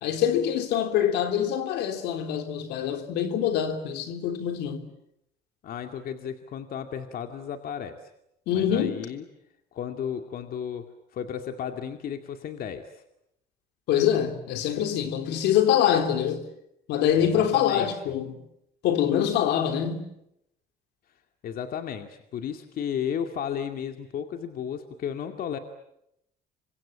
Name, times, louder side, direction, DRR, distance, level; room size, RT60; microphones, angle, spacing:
voice 1, 0.0-4.9 8.5-9.1 13.9-16.4 16.9-18.4 18.8-20.1, left 9 dB, 85° left, 3.4 m, -25 dB
voice 2, 5.6-8.0 8.5-9.2 9.7-12.9 17.2-18.1 21.4-25.6, left 8 dB, 60° left, 2.3 m, -34 dB
28.0 x 24.5 x 8.6 m
cardioid pair, 110°, 17 cm